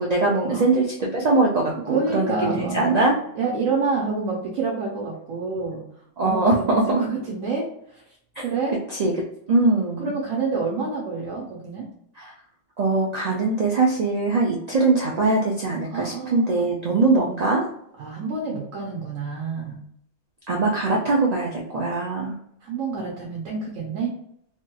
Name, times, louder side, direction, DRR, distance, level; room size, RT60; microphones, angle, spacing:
voice 1, 0.0-3.2 6.2-7.0 8.9-9.1 9.5-10.1 12.2-12.3 12.8-17.6 20.5-22.4, right 3 dB, 65° right, -3 dB, 0.4 m, -22 dB
voice 2, 1.9-2.9 3.4-5.8 6.2-8.0 8.4-8.8 10.0-11.9 15.9-16.5 18.0-19.8 22.6-24.1, right 4 dB, 90° right, -2 dB, 1.1 m, -28 dB
3.1 x 2.9 x 2.2 m, 0.71 s
omnidirectional pair, 1.3 m